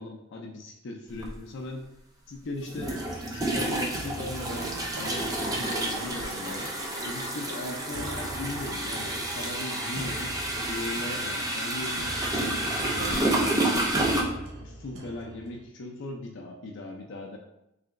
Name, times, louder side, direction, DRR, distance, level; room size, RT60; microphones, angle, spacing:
voice 1, 0.0-1.9 2.3-6.7 7.0-14.2 14.6-17.4, left 2 dB, 60° left, 1 dB, 0.4 m, -38 dB
sound 1, 1.2-1.3 2.7-14.2, right 1 dB, 20° right, 0.5 m, -30 dB
sound 2, 2.7-15.7, right 1 dB, 75° right, 0.7 m, -42 dB
3.2 x 2.9 x 3.6 m, 0.84 s
head